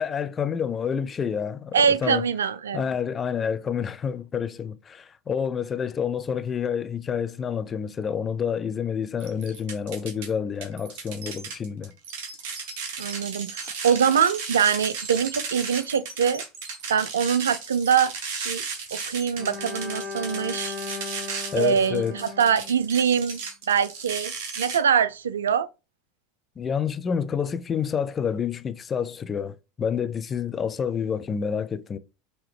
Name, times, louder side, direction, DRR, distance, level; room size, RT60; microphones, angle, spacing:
voice 1, 0.0-2.3 2.7-11.9 21.5-22.1 26.6-32.0, left 7 dB, 30° left, 0.5 m, -28 dB
voice 2, 1.7-2.8 13.0-16.4 16.9-18.1 18.4-18.6 18.9-20.8 21.5-23.4 23.7-25.7, right 7 dB, 75° right, 0.3 m, -23 dB
sound 1, 9.2-10.3 10.6-24.8, right 5 dB, 60° right, 1.4 m, -35 dB
Bowed string instrument, 19.4-23.4, left 4 dB, 30° right, 1.3 m, -37 dB
5.5 x 2.8 x 3.4 m
figure-of-eight pair, 75°, 0 cm